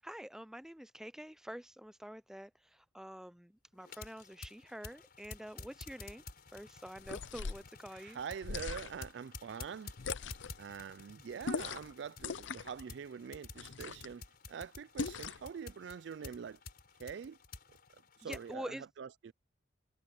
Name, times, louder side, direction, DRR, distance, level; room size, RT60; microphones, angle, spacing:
voice 1, 0.0-6.2 6.5-8.2 18.2-18.9, equal, 5° right, 0.5 m, -47 dB
sound 1, 3.8-18.5, left 4 dB, 50° left, 4.8 m, -52 dB
sound 2, 7.0-7.7 8.4-9.1 10.0-10.6 11.4-11.9 12.2-12.8 13.6-14.1 15.0-15.5, left 5 dB, 75° left, 0.6 m, -40 dB
voice 2, 7.9-9.9 10.6-16.6 17.0-17.4 18.2-19.3, right 7 dB, 65° right, 0.4 m, -44 dB
head